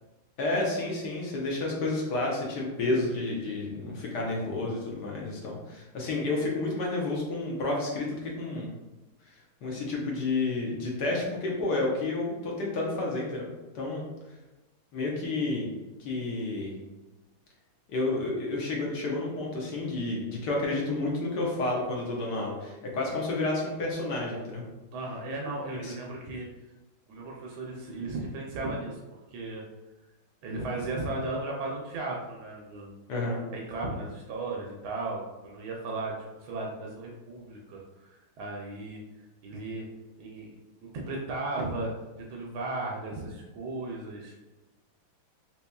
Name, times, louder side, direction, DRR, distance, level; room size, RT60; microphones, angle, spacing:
voice 1, 0.4-8.7 9.2-13.5 13.7-14.0 14.9-15.7 16.0-16.7 17.9-24.6 25.8-25.9 33.1-33.4, left 2 dB, 65° left, -2 dB, 1.3 m, -30 dB
voice 2, 24.9-26.5 27.1-29.0 29.3-29.6 30.4-32.9 33.5-36.2 36.4-38.1 38.4-39.0 39.4-39.9 40.2-40.5 40.8-41.9 42.3-44.3, right 2 dB, 80° right, -2 dB, 1.4 m, -35 dB
4.0 x 2.9 x 2.2 m, 1.1 s
omnidirectional pair, 2.2 m